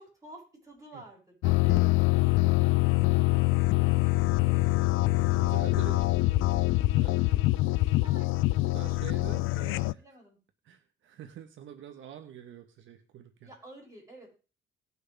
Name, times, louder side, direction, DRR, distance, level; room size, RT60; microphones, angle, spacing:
voice 1, 0.0-3.5 5.3-5.7 8.0-8.5 9.9-10.4 13.4-14.3, right 1 dB, 15° right, -3 dB, 7.5 m, -52 dB
sound 1, 1.4-9.9, left 20 dB, 90° left, 0.4 m, -24 dB
voice 2, 5.4-6.2 6.9-8.0 8.7-10.0 10.6-13.5, right 10 dB, 75° right, 6 dB, 1.3 m, -46 dB
19.0 x 6.4 x 3.5 m, 0.35 s
cardioid pair, 90°, 20 cm